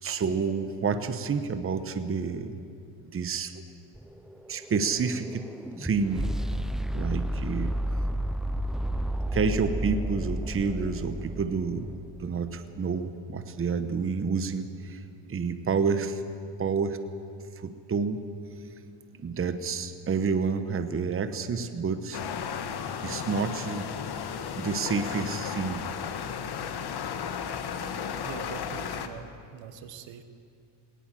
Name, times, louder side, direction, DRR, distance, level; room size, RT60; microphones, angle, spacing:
voice 1, 0.0-2.6 3.0-3.6 4.5-5.5 5.8-6.3 6.9-7.8 9.3-11.9 12.2-15.0 15.3-16.2 16.6-17.0 17.6-18.2 19.2-22.2 23.0-23.9 24.6-25.8, right 5 dB, 30° right, 9 dB, 1.1 m, -29 dB
sound 1, 4.0-12.1, equal, ahead, 0.5 m, -32 dB
sound 2, 22.1-29.1, left 7 dB, 60° left, 1.5 m, -34 dB
voice 2, 28.2-30.2, right 8 dB, 85° right, 10 dB, 1.5 m, -43 dB
19.0 x 18.5 x 7.6 m, 2.4 s
cardioid pair, 125°, 44 cm